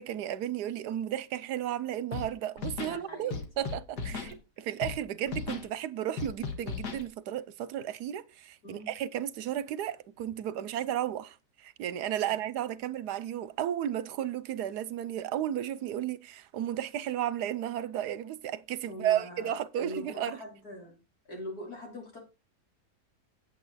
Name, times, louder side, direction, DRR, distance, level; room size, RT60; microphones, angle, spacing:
voice 1, 0.0-11.4 11.6-20.4, right 11 dB, 80° right, 1.3 m, -33 dB
Scratching (performance technique), 2.1-2.3 2.6-3.0 3.3-4.3 4.8-5.0 5.3-5.7 6.2-7.0, left 5 dB, 85° left, 2.1 m, -36 dB
voice 2, 2.7-3.4 4.0-4.4 8.6-8.9 18.9-21.0 21.3-22.2, left 1 dB, 65° left, 4.3 m, -43 dB
8.8 x 8.6 x 4.1 m
omnidirectional pair, 1.7 m